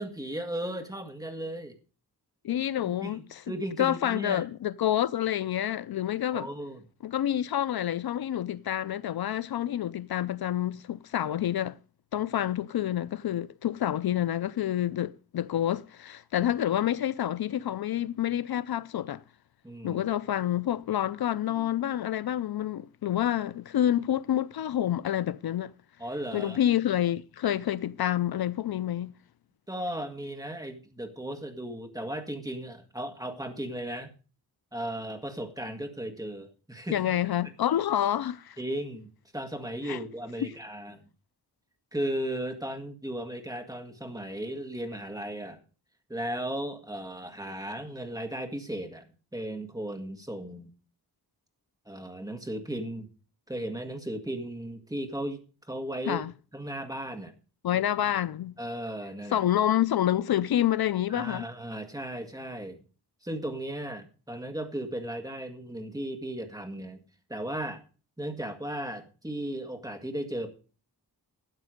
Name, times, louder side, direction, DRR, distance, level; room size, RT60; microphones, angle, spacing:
voice 1, 0.0-1.7 2.8-4.4 6.3-6.8 16.4-16.5 19.6-20.0 21.5-21.7 26.0-26.6 29.7-34.1 34.7-37.1 38.6-41.0 41.9-45.6 46.1-49.0 49.3-50.7 51.8-53.1 53.5-56.2 56.5-57.3 58.0-58.1 58.6-59.4 61.1-62.8 63.2-67.0 67.3-67.8 68.2-70.5, right 1 dB, 10° right, 1.8 m, -36 dB
voice 2, 2.4-3.4 3.8-6.5 7.0-11.8 12.1-19.2 19.8-25.7 26.3-29.1 36.9-38.6 39.9-40.0 40.4-40.5 56.1-56.3 57.6-58.6 59.3-61.5, left 11 dB, 70° left, 0.5 m, -28 dB
13.0 x 8.1 x 5.0 m
wide cardioid pair, 125°, 39 cm